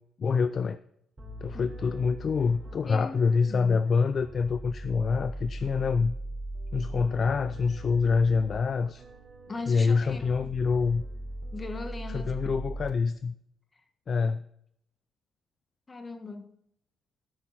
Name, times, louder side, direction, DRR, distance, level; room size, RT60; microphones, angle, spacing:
voice 1, 0.2-0.8 1.4-6.1 6.7-9.0 9.7-11.0 12.1-13.3 14.1-14.4, left 5 dB, 45° left, 0.4 m, -26 dB
sound 1, 1.2-12.9, right 1 dB, 30° right, 4.1 m, -40 dB
voice 2, 2.9-3.2 3.5-3.8 9.5-10.5 11.5-12.4 15.9-16.5, left 3 dB, 30° left, 1.5 m, -39 dB
12.5 x 6.4 x 5.8 m
cardioid pair, 90°, 0 cm